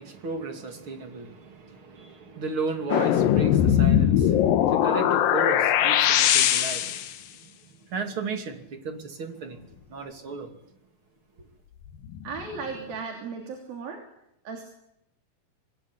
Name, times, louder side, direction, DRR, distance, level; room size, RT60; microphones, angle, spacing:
voice 1, 0.0-7.1 7.4-7.5 7.9-9.6 9.9-10.5, right 4 dB, 40° right, 3.2 m, -34 dB
sound 1, 2.9-7.2 12.0-12.7, left 10 dB, 80° left, 2.9 m, -21 dB
voice 2, 12.2-14.0 14.4-14.6, right 5 dB, 85° right, 4.9 m, -36 dB
25.0 x 21.0 x 9.9 m
omnidirectional pair, 4.1 m